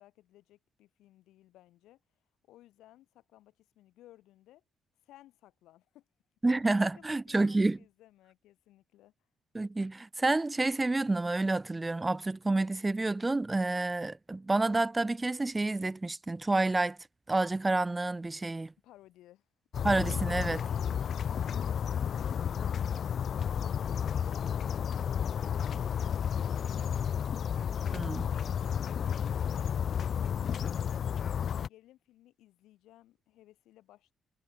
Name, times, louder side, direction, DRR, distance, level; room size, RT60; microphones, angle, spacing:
voice 1, 0.0-2.0 2.4-4.6 5.0-6.1 6.8-9.1 18.8-19.5 28.2-29.7 30.2-34.1, left 15 dB, 90° left, 6.0 m, -60 dB
voice 2, 6.4-7.8 9.5-17.0 17.3-18.7 19.8-20.6 27.9-28.2, right 2 dB, 20° right, 0.6 m, -29 dB
sound 1, 19.7-31.7, left 8 dB, 55° left, 0.5 m, -32 dB
cardioid pair, 90°, 0 cm